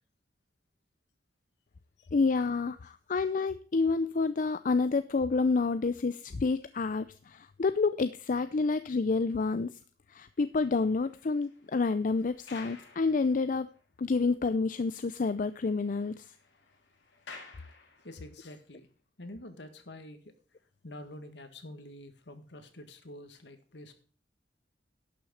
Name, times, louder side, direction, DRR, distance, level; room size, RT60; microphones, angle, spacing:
voice 1, 2.1-9.7 10.1-13.7 14.0-16.3, left 4 dB, 45° left, 0.5 m, -29 dB
sound 1, 10.3-13.8 14.3-14.4 14.8-14.9 15.2-18.4, left 4 dB, 90° left, 2.6 m, -53 dB
voice 2, 18.0-18.9 19.2-20.3 20.8-23.9, left 1 dB, 70° left, 1.8 m, -47 dB
11.5 x 6.3 x 6.3 m
head